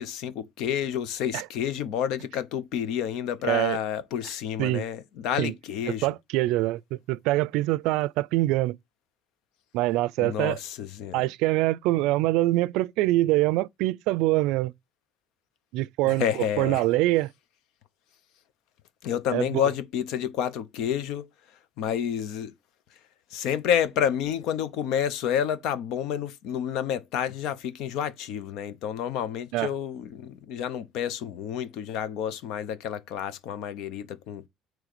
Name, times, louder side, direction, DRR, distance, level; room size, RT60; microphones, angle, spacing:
voice 1, 0.0-6.1 10.2-11.2 16.0-16.8 19.0-21.3 21.8-22.5 23.3-34.4, left 9 dB, 70° left, 0.9 m, -29 dB
voice 2, 3.4-3.8 4.6-4.8 5.4-5.5 5.9-8.8 9.7-10.6 11.1-14.7 15.7-17.3 19.3-19.6 29.5-29.7, right 18 dB, 80° right, 0.4 m, -24 dB
9.0 x 3.2 x 6.7 m
cardioid pair, 140°, 0 cm